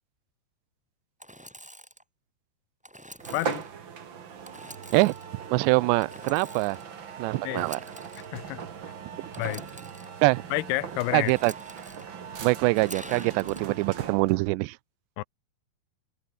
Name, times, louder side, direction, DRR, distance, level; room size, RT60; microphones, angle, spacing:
Engine / Sawing, 1.2-2.0 2.8-3.7 4.4-5.3 6.0-6.9 7.5-8.3 9.3-10.1 11.3-12.0 12.7-13.6, equal, ahead, 2.4 m, -46 dB
sound 1, 3.2-14.5, right 7 dB, 50° right, 1.4 m, -40 dB
voice 1, 3.3-3.6 7.4-7.7 8.3-8.6 9.4-9.7 10.5-11.3 15.2-15.3, left 20 dB, 85° left, 2.6 m, -29 dB
voice 2, 5.5-6.8 7.2-7.8 10.2-10.4 11.1-11.5 12.4-14.8, right 23 dB, 90° right, 2.8 m, -24 dB
omnidirectional pair, 4.9 m